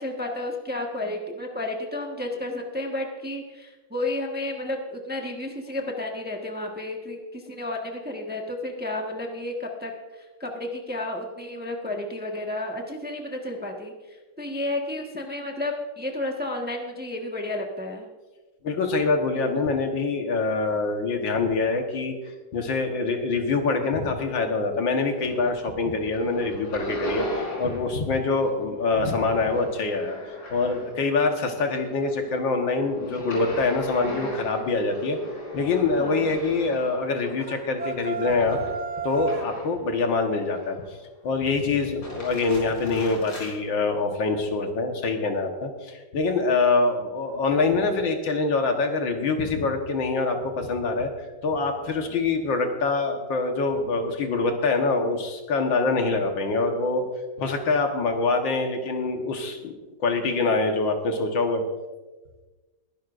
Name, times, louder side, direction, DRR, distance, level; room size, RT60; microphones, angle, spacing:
voice 1, 0.0-18.1 36.0-36.4, left 1 dB, 5° right, 1 dB, 1.2 m, -32 dB
voice 2, 18.6-22.2 22.5-30.2 30.5-35.2 35.5-38.6 39.0-40.8 41.2-51.1 51.4-57.0 57.4-59.7 60.0-61.6, left 3 dB, 80° left, 4 dB, 2.1 m, -25 dB
sound 1, 24.9-25.7 25.9-28.0 28.2-31.1 31.5-39.8 40.3-41.0 41.8-43.5, equal, 65° left, 4.5 m, -38 dB
sound 2, 37.4-39.5, right 4 dB, 45° right, 0.5 m, -32 dB
21.5 x 11.0 x 2.6 m, 1.2 s
omnidirectional pair, 2.0 m